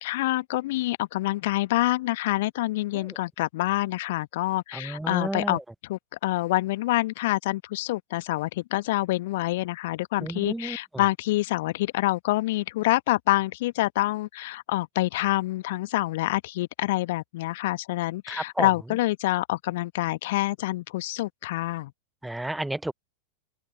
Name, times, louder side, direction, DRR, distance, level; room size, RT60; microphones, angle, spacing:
voice 1, 0.0-21.9, left 18 dB, 50° left, 1.1 m, -27 dB
voice 2, 4.8-5.6 10.2-10.8 18.3-18.7 22.2-22.9, right 1 dB, 5° right, 0.4 m, -31 dB
open air
figure-of-eight pair, 90°, 0 cm